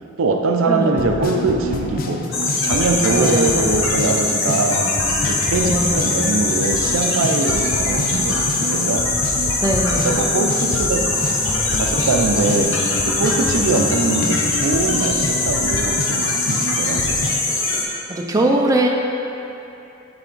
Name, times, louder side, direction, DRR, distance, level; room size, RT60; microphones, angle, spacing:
voice 1, 0.2-4.8 5.3-9.1 9.9-11.1 11.7-12.8 13.0-17.2, right 3 dB, 75° right, 4 dB, 0.5 m, -22 dB
sound 1, 0.9-17.3, left 2 dB, 45° left, 0.4 m, -27 dB
sound 2, 2.3-17.8, left 3 dB, 65° left, 0.9 m, -22 dB
voice 2, 3.1-3.7 5.6-5.9 9.6-10.2 17.7-17.8 18.1-18.9, right 1 dB, 15° right, 0 dB, 0.4 m, -21 dB
sound 3, 7.5-13.5, equal, 20° left, 1.1 m, -35 dB
8.0 x 3.4 x 3.8 m, 2.8 s
head